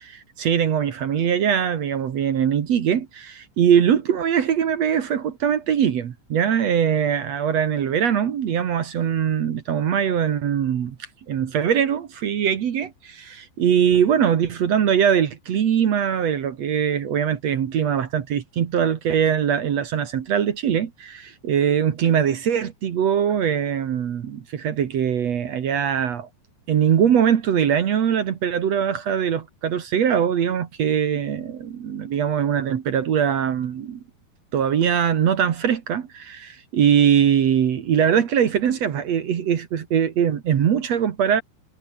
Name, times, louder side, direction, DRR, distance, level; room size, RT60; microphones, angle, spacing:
voice 1, 0.4-11.0 11.3-26.3 26.7-34.0 34.5-41.4, right 8 dB, 60° right, 1.8 m, -21 dB
omnidirectional pair, 5.3 m